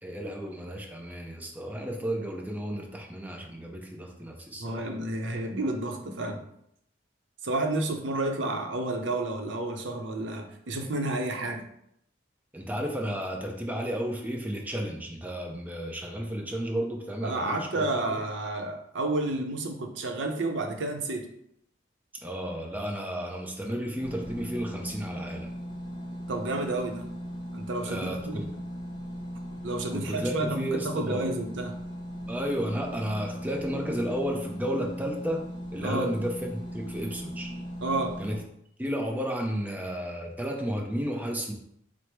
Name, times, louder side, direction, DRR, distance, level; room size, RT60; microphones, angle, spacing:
voice 1, 0.0-4.8 12.5-18.2 22.2-25.5 27.8-28.5 29.9-31.3 32.3-35.5 35.7-37.5 38.2-38.4 38.8-41.5, equal, 10° right, 1 dB, 0.5 m, -33 dB
voice 2, 4.6-6.4 7.4-11.6 17.2-21.3 26.3-27.1 27.5-28.5 29.6-31.8 35.8-36.1 37.8-38.2, right 2 dB, 75° right, 4 dB, 0.6 m, -30 dB
sound 1, 24.0-38.4, equal, 20° left, 0.8 m, -38 dB
4.7 x 2.0 x 4.4 m, 0.74 s
head